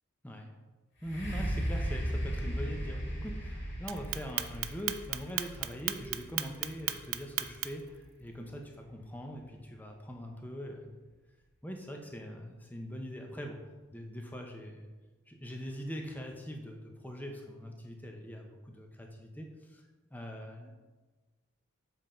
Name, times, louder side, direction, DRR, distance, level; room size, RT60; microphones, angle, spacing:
voice 1, 0.2-0.5 1.0-11.0 11.6-13.6 13.9-14.9 15.3-19.8 20.1-20.7, equal, 10° left, 2 dB, 0.6 m, -42 dB
sound 1, 1.0-8.8 9.4-9.5, equal, 55° left, 1.9 m, -37 dB
Clock, 3.9-7.9, right 14 dB, 75° right, 0.4 m, -33 dB
7.3 x 3.8 x 4.3 m, 1.3 s
head